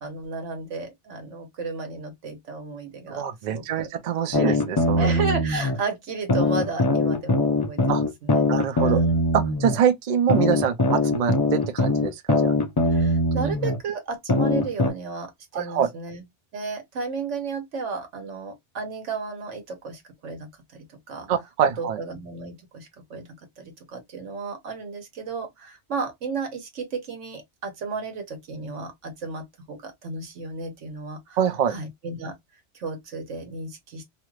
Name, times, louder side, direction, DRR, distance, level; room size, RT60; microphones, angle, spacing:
voice 1, 0.0-3.9 4.4-4.6 5.0-8.5 8.8-9.1 12.9-16.2 16.5-21.3 21.8-31.4 31.7-32.4 32.7-34.1, right 4 dB, 90° right, 1.4 m, -33 dB
voice 2, 3.1-5.1 7.9-8.0 8.5-9.0 9.3-12.6 15.5-15.9 21.3-22.0 31.4-31.7, right 8 dB, 50° right, 0.5 m, -25 dB
sound 1, 4.3-5.8 6.3-9.8 10.3-13.8 14.3-14.9, left 2 dB, 35° left, 0.4 m, -22 dB
2.9 x 2.4 x 3.1 m
omnidirectional pair, 1.2 m